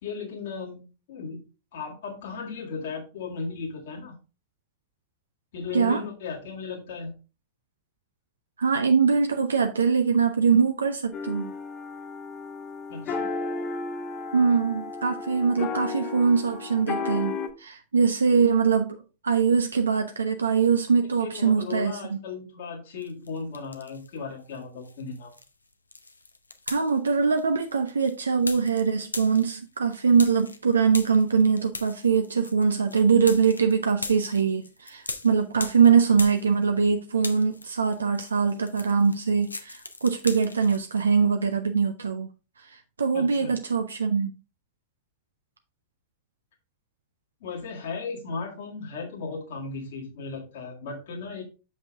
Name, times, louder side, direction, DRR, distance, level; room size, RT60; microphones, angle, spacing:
voice 1, 0.0-1.4 1.7-4.1 5.5-7.1 12.9-13.3 21.2-25.3 43.1-43.5 47.4-51.4, left 5 dB, 55° left, 1.8 m, -36 dB
voice 2, 8.6-11.5 14.3-19.0 19.2-22.2 26.7-42.3 42.7-44.3, right 5 dB, 75° right, 0.6 m, -23 dB
sound 1, 11.1-17.5, left 4 dB, 30° left, 1.1 m, -33 dB
sound 2, 23.0-24.2 24.5-36.9 37.2-41.1, left 3 dB, 80° left, 0.7 m, -40 dB
6.9 x 5.4 x 3.6 m
figure-of-eight pair, 90°, 0 cm